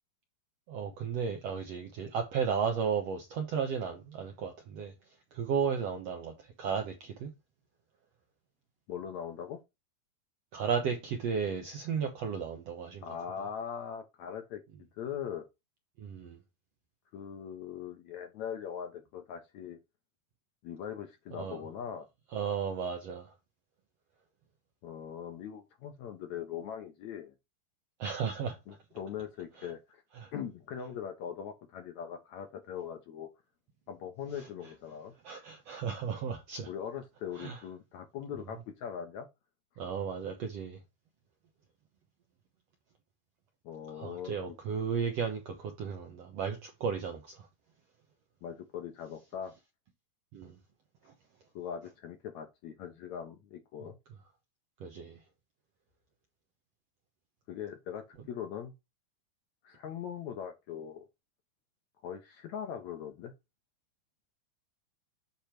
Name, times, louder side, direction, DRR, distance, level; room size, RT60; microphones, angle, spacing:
voice 1, 0.7-4.9 5.3-7.3 10.5-13.1 16.0-16.4 21.3-21.6 22.3-23.3 28.0-28.6 29.6-29.7 30.1-30.3 34.4-34.5 35.2-36.7 37.4-37.6 39.8-40.8 43.9-47.5 50.3-50.6 54.8-55.2, right 6 dB, 70° right, 1.6 m, -34 dB
voice 2, 8.9-9.6 13.0-14.6 14.9-15.5 17.1-19.8 20.6-22.1 24.8-27.3 28.7-30.0 30.3-33.3 33.9-35.1 36.7-39.3 43.6-44.6 48.4-49.5 51.6-54.0 57.5-58.7 59.6-61.0 62.0-63.3, left 8 dB, 70° left, 1.9 m, -41 dB
8.6 x 3.1 x 5.8 m
omnidirectional pair, 4.2 m